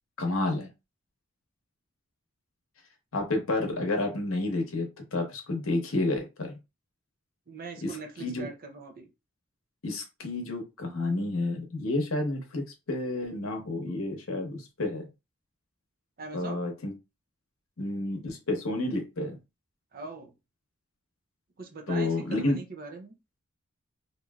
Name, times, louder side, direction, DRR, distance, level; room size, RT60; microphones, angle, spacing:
voice 1, 0.2-0.7 3.1-6.5 7.8-7.9 8.2-8.5 9.8-15.1 16.3-16.9 17.8-19.4 21.9-22.6, left 2 dB, 65° left, 0.9 m, -30 dB
voice 2, 7.5-9.1 16.2-16.6 19.9-20.3 21.6-23.1, right 3 dB, 45° right, 0.6 m, -41 dB
3.1 x 2.6 x 2.3 m
head